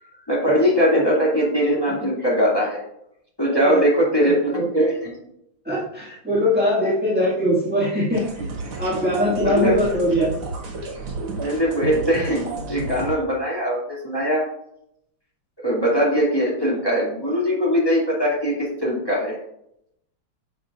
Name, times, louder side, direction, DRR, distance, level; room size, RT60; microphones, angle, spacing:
voice 1, 0.3-2.8 3.4-5.1 9.4-9.8 11.4-14.4 15.6-19.4, equal, 10° left, -5 dB, 2.2 m, -21 dB
voice 2, 3.5-3.8 4.2-4.7 5.6-8.4 8.8-10.3, equal, 5° right, -7 dB, 1.4 m, -22 dB
sound 1, 8.1-13.2, right 3 dB, 80° right, 2.6 m, -31 dB
9.8 x 6.2 x 2.4 m, 0.76 s
omnidirectional pair, 2.4 m